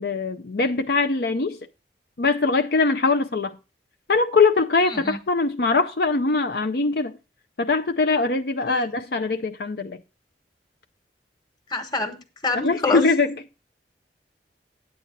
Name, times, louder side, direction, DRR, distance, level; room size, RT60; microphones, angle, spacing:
voice 1, 0.0-1.6 2.2-3.6 4.1-7.1 7.6-10.0 12.5-13.4, left 3 dB, 60° left, 0.6 m, -22 dB
voice 2, 4.8-5.2 8.7-8.9 11.7-12.1 12.4-13.0, left 3 dB, 25° left, 1.5 m, -26 dB
9.9 x 8.3 x 3.9 m
head